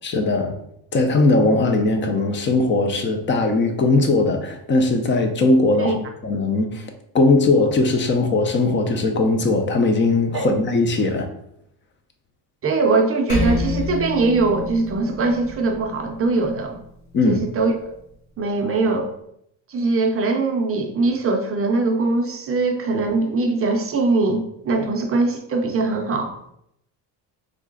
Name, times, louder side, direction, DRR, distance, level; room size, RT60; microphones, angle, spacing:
voice 1, 0.0-0.6 0.9-6.8 7.1-11.3 17.1-17.4, left 2 dB, 25° left, 6 dB, 0.5 m, -19 dB
voice 2, 12.6-16.8 17.2-17.9 18.4-19.1 19.7-26.3, right 3 dB, 30° right, 3 dB, 0.5 m, -21 dB
Percussion, 13.3-18.1, left 2 dB, 60° left, 1.5 m, -30 dB
3.7 x 3.2 x 3.7 m, 0.75 s
cardioid pair, 145°, 43 cm